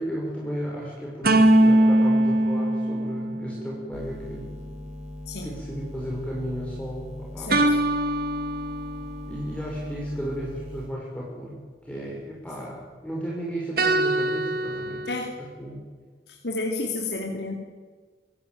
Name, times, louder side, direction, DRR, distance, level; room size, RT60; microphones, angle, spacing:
voice 1, 0.0-4.5 5.4-7.5 9.3-15.0 15.6-15.8, equal, 5° left, -4 dB, 5.5 m, -34 dB
sound 1, 1.2-3.8 7.5-9.3 13.8-15.2, right 1 dB, 55° right, 2.4 m, -22 dB
sound 2, 3.9-10.9, left 1 dB, 40° right, 4.5 m, -39 dB
voice 2, 7.4-7.8 15.0-15.4 16.3-17.5, left 2 dB, 70° left, 1 dB, 3.0 m, -31 dB
26.5 x 16.5 x 9.3 m, 1.5 s
head